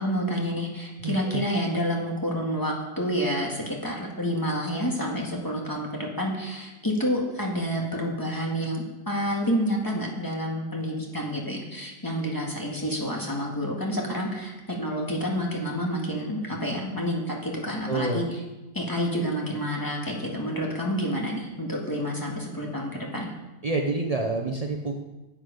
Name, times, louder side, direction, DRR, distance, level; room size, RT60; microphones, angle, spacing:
voice 1, 0.0-18.2 18.7-23.3, equal, 10° left, -2 dB, 1.8 m, -29 dB
voice 2, 1.0-1.4 17.9-18.2 23.6-25.0, right 3 dB, 50° right, 3 dB, 0.4 m, -28 dB
13.0 x 7.9 x 5.2 m, 1.1 s
omnidirectional pair, 1.9 m